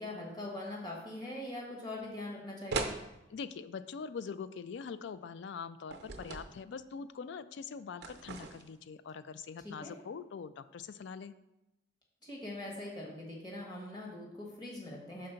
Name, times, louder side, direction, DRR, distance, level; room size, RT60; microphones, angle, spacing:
voice 1, 0.0-2.9 9.6-9.9 12.2-15.3, left 1 dB, 20° left, -3 dB, 1.4 m, -42 dB
sound 1, 2.7-3.0 5.9-6.5 8.0-8.8, right 3 dB, 60° right, 0.7 m, -38 dB
voice 2, 3.3-11.3, left 5 dB, 65° left, 14 dB, 0.3 m, -43 dB
5.4 x 3.8 x 5.7 m, 0.93 s
head